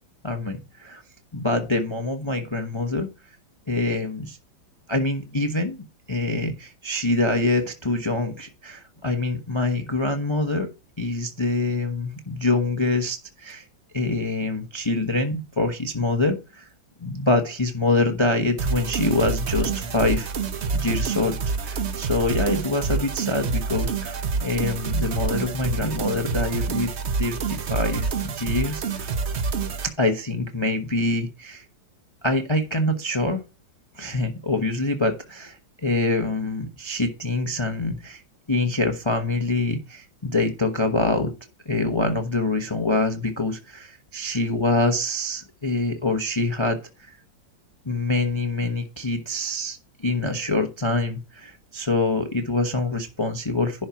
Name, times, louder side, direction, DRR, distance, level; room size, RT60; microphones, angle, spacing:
voice 1, 0.2-1.0 1.3-3.1 3.7-4.4 4.9-5.8 6.1-10.7 11.0-13.6 13.9-16.7 17.0-20.3 20.7-26.9 27.2-29.1 29.8-31.6 32.2-33.4 34.0-38.2 38.5-41.3 41.7-47.2 47.8-53.8, left 2 dB, 25° left, 5 dB, 0.7 m, -25 dB
sound 1, 18.6-29.9, right 5 dB, 50° right, 0.9 m, -27 dB
11.0 x 4.3 x 5.8 m, 0.29 s
omnidirectional pair, 2.1 m